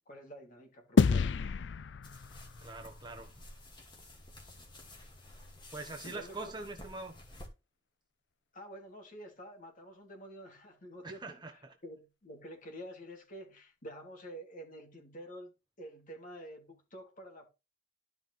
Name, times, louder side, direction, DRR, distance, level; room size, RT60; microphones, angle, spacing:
voice 1, 0.1-1.4 6.0-6.5 8.5-11.4 11.8-17.5, equal, 50° left, 3.0 m, -48 dB
sound 1, 1.0-3.6, left 5 dB, 70° left, 0.4 m, -30 dB
sound 2, 2.0-7.5, left 1 dB, 25° left, 2.3 m, -52 dB
voice 2, 2.6-3.3 5.7-7.1 11.0-11.7, right 2 dB, 25° right, 1.2 m, -43 dB
13.0 x 5.6 x 3.4 m
head